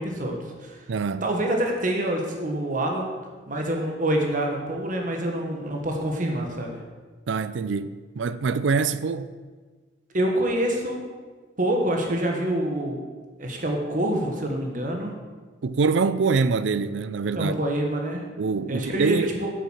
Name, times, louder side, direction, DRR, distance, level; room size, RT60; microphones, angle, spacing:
voice 1, 0.0-0.8 1.2-3.1 3.5-6.8 10.1-11.1 11.6-13.0 13.4-15.1 17.3-18.2 18.7-19.5, right 1 dB, 45° right, 1.4 m, -26 dB
voice 2, 0.9-1.2 7.3-9.3 15.6-17.5 18.4-19.3, right 4 dB, 75° right, 0.4 m, -24 dB
8.6 x 6.7 x 6.4 m
head